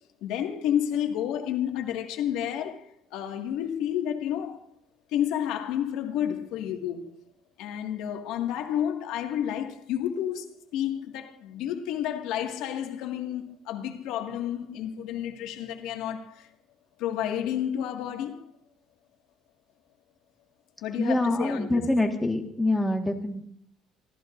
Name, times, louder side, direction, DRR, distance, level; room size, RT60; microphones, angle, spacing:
voice 1, 0.2-2.8 3.1-4.6 5.1-7.1 7.6-10.5 10.7-16.5 17.0-18.5 20.8-21.8, left 10 dB, 80° left, 1.9 m, -30 dB
voice 2, 21.0-23.4, left 2 dB, 5° left, 1.6 m, -25 dB
27.5 x 14.0 x 2.6 m
cardioid pair, 150°, 0 cm